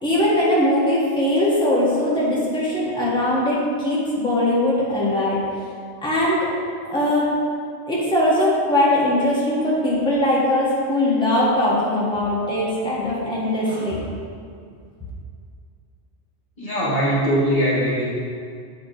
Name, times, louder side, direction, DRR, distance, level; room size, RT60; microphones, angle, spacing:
voice 1, 0.0-5.4 6.0-6.4 6.9-7.3 7.9-14.1, left 1 dB, 5° left, -7 dB, 1.6 m, -20 dB
voice 2, 16.6-18.1, equal, 50° left, -6 dB, 2.0 m, -21 dB
8.2 x 5.3 x 5.1 m, 2.2 s
omnidirectional pair, 1.3 m